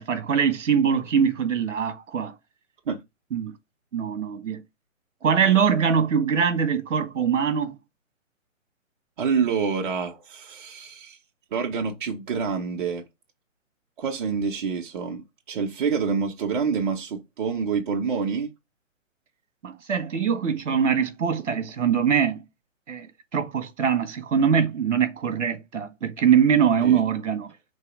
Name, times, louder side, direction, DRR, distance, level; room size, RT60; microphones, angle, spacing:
voice 1, 0.0-2.3 3.3-3.5 3.9-4.6 5.2-7.8 19.6-22.4 22.9-27.5, right 7 dB, 65° right, 1.7 m, -23 dB
voice 2, 9.2-11.2 11.5-13.0 14.0-18.5 26.8-27.0, right 6 dB, 40° right, 1.0 m, -27 dB
6.6 x 3.3 x 5.0 m
hypercardioid pair, 155°, 39 cm